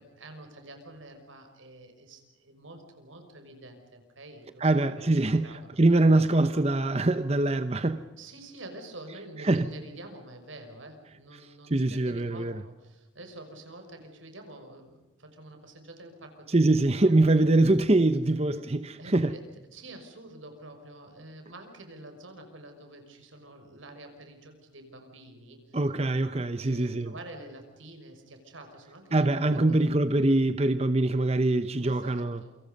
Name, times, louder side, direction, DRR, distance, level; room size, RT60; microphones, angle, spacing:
voice 1, 0.0-4.7 5.0-5.7 8.2-16.5 16.9-17.0 19.0-25.8 26.6-29.8 31.8-32.6, right 1 dB, 90° right, 6.1 m, -47 dB
voice 2, 4.6-5.5 5.8-8.0 9.4-9.7 11.7-12.6 16.5-19.3 25.7-27.1 29.1-32.4, right 2 dB, 30° right, 0.9 m, -23 dB
28.5 x 25.5 x 5.4 m
head